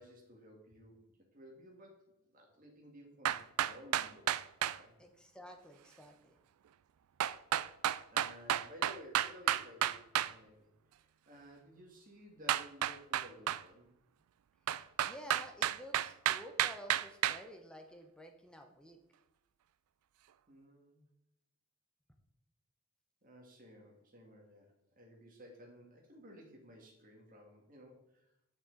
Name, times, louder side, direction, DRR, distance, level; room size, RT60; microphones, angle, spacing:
voice 1, 0.0-4.4 4.7-5.0 8.1-10.7 10.9-13.9 20.5-21.1 23.2-28.3, equal, 35° right, 1 dB, 1.9 m, -56 dB
sound 1, 3.2-4.8 7.2-10.3 12.5-13.6 14.7-17.4, right 11 dB, 80° right, 0.3 m, -31 dB
voice 2, 5.0-6.4 14.7-19.0, equal, 5° left, 3 dB, 0.9 m, -52 dB
8.8 x 6.1 x 4.0 m, 0.83 s
head